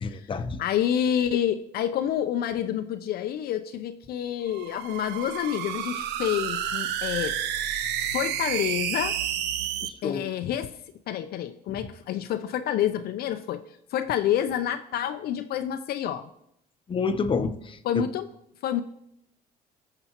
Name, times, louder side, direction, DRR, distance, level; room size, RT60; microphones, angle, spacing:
voice 1, 0.0-0.6 10.0-10.2 16.9-18.0, left 5 dB, 30° left, 9 dB, 0.8 m, -28 dB
voice 2, 0.6-9.2 9.8-10.7 11.1-13.6 13.9-16.3 17.8-18.3 18.6-18.8, left 10 dB, 65° left, 8 dB, 0.5 m, -28 dB
sound 1, 4.5-9.9, right 10 dB, 90° right, 0.7 m, -30 dB
19.0 x 6.7 x 2.9 m, 0.76 s
cardioid pair, 110°, 17 cm